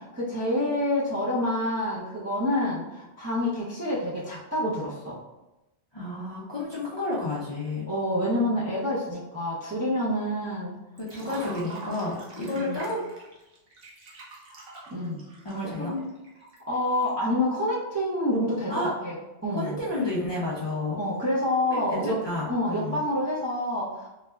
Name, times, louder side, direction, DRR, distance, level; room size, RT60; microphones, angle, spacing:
voice 1, 0.0-5.2 7.9-10.7 11.2-11.9 12.4-12.9 14.9-15.2 15.8-16.1 16.7-19.2 19.4-19.8 21.0-24.2, left 1 dB, 25° right, -7 dB, 0.4 m, -28 dB
voice 2, 5.9-7.8 11.0-13.0 15.4-15.9 18.7-18.9 19.5-21.0 21.7-23.0, left 2 dB, 35° left, -8 dB, 0.5 m, -31 dB
Liquid, 11.0-17.1, right 2 dB, 65° right, 0.9 m, -45 dB
3.9 x 2.1 x 2.2 m, 0.99 s
omnidirectional pair, 1.1 m